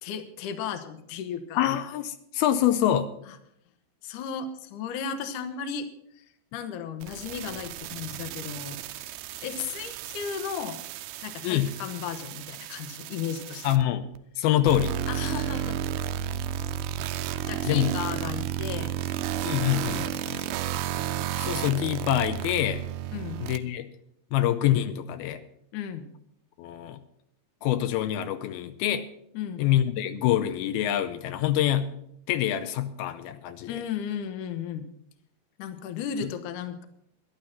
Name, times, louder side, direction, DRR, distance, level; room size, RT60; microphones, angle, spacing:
voice 1, 0.0-1.6 3.3-3.4 4.0-5.9 6.1-6.3 6.5-8.8 9.4-10.8 11.2-13.7 15.1-15.8 17.5-19.0 20.0-20.6 23.1-23.4 25.7-26.1 29.3-29.7 33.7-34.9 35.6-36.9, left 7 dB, 65° left, 9 dB, 2.3 m, -35 dB
voice 2, 1.6-3.1 11.4-11.7 13.6-14.1 14.4-15.0 17.7-17.9 19.4-20.1 21.4-22.8 23.4-23.9 24.3-25.4 26.6-27.0 27.6-29.1 29.6-31.9 32.3-33.8 36.2-36.3, left 12 dB, 85° left, 9 dB, 2.6 m, -25 dB
sound 1, 7.0-13.8 14.1-14.2 14.7-23.6, right 11 dB, 85° right, 2.5 m, -33 dB
12.0 x 11.5 x 5.8 m, 0.75 s
omnidirectional pair, 4.3 m